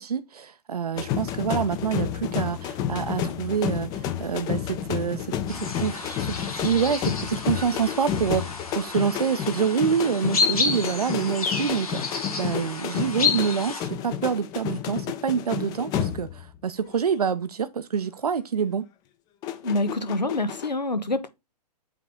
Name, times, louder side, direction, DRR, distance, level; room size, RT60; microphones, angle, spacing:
voice 1, 0.0-18.9, right 7 dB, 65° right, 0.7 m, -27 dB
sound 1, 1.0-16.6 16.9-17.2 19.4-20.7, left 9 dB, 20° left, 0.6 m, -31 dB
sound 2, 5.5-13.8, left 4 dB, 60° left, 3.0 m, -30 dB
voice 2, 19.6-21.3, left 2 dB, 85° left, 1.1 m, -26 dB
8.3 x 4.0 x 3.7 m
figure-of-eight pair, 120°, 21 cm